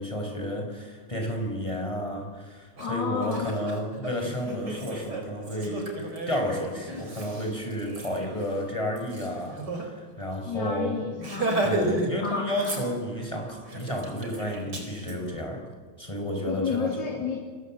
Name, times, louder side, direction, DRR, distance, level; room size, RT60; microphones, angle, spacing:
voice 1, 0.0-11.0 11.6-15.7 16.0-17.0, left 1 dB, 15° left, 3 dB, 6.0 m, -31 dB
voice 2, 2.8-3.5 10.4-11.5 12.2-12.5 16.5-17.4, left 5 dB, 85° left, 1 dB, 3.5 m, -31 dB
Laughter, 2.8-2.9 3.2-9.9 10.2-10.3 10.6-10.8 11.2-12.1 12.4-13.2 13.7-15.1, right 2 dB, 65° right, 5.0 m, -33 dB
30.0 x 23.5 x 7.8 m, 1.5 s
omnidirectional pair, 1.9 m